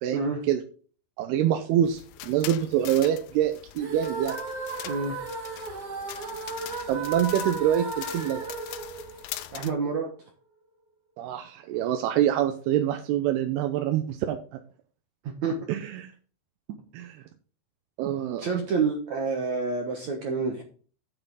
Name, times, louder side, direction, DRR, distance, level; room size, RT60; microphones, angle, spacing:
voice 1, 0.0-0.6 1.2-4.4 6.9-8.5 11.2-14.6 15.7-16.1 16.9-17.2 18.0-18.4, right 10 dB, 80° right, 6 dB, 2.7 m, -26 dB
sound 1, 1.9-9.7, left 15 dB, 80° left, 2.5 m, -42 dB
sound 2, 3.7-9.9, right 3 dB, 45° right, 2.4 m, -35 dB
voice 2, 4.8-5.2 9.5-10.1 15.2-15.5 18.4-20.6, right 4 dB, 65° right, 2 dB, 1.9 m, -28 dB
8.9 x 8.3 x 3.9 m, 0.41 s
omnidirectional pair, 4.8 m